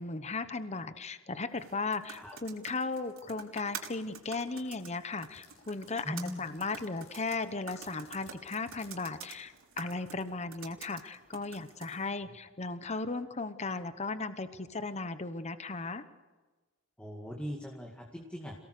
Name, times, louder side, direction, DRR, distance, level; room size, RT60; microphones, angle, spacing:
voice 1, 0.0-16.0, left 3 dB, 35° left, 11 dB, 1.0 m, -36 dB
sound 1, 1.5-12.1, right 7 dB, 80° right, 3.8 m, -49 dB
sound 2, 3.9-8.9, left 6 dB, 65° left, 5.6 m, -60 dB
voice 2, 6.0-6.4 12.2-12.3 17.0-18.5, equal, 5° left, 0 dB, 2.1 m, -40 dB
28.5 x 18.0 x 6.6 m, 1.3 s
head